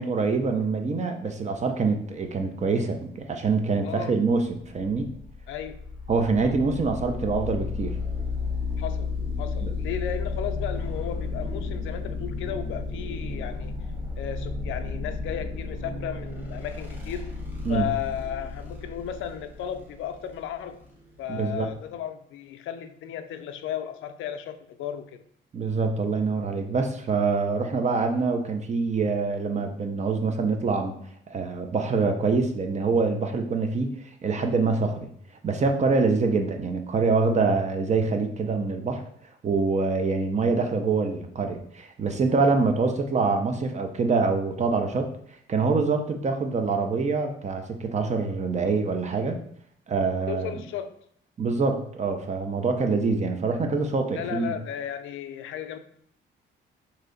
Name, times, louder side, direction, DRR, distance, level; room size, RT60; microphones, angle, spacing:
voice 1, 0.0-5.1 6.1-7.9 9.6-9.7 17.6-17.9 21.3-21.7 25.5-30.9 31.3-33.9 34.2-35.1 35.4-39.0 39.4-45.1 45.5-49.4 49.9-50.6 51.4-54.6, right 4 dB, 35° right, 5 dB, 0.6 m, -25 dB
voice 2, 3.8-4.2 5.5-5.9 8.8-9.1 9.4-13.9 14.2-17.3 17.7-20.8 21.2-25.2 50.3-50.9 54.1-55.8, left 9 dB, 80° left, 8 dB, 0.4 m, -34 dB
sound 1, 4.6-21.8, left 4 dB, 10° right, 0.9 m, -33 dB
3.1 x 2.7 x 3.8 m, 0.66 s
cardioid pair, 90°, 20 cm